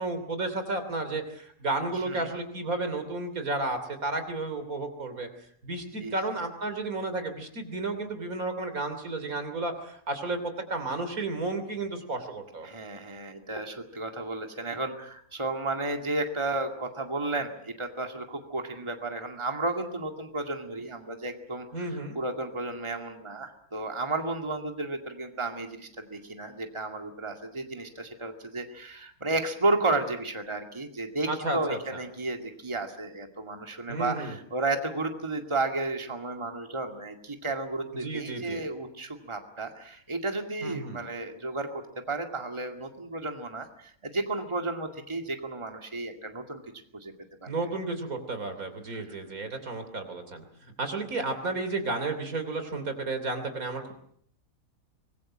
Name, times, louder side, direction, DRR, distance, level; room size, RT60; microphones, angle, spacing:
voice 1, 0.0-5.3 5.6-10.4 10.7-12.7 21.7-22.2 31.3-31.8 33.9-34.3 38.0-38.6 40.6-41.0 47.5-50.4 50.8-53.9, right 2 dB, 75° right, 8 dB, 3.6 m, -32 dB
voice 2, 12.6-46.6 46.9-47.1 47.4-47.5 48.9-49.1, right 2 dB, 20° right, 4 dB, 2.2 m, -33 dB
25.0 x 21.0 x 7.5 m, 0.66 s
omnidirectional pair, 1.5 m